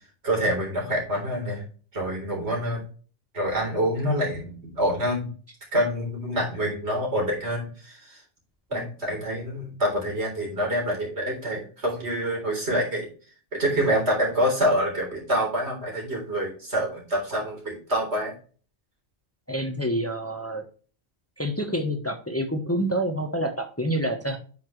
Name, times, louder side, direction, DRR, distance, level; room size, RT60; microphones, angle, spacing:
voice 1, 0.2-1.6 1.9-2.9 3.3-5.3 5.7-8.2 8.7-13.1 13.5-18.3, equal, 80° right, -2 dB, 4.1 m, -26 dB
voice 2, 19.5-20.6 21.4-24.4, equal, 15° left, 5 dB, 1.0 m, -28 dB
9.0 x 5.8 x 3.2 m, 0.38 s
omnidirectional pair, 1.1 m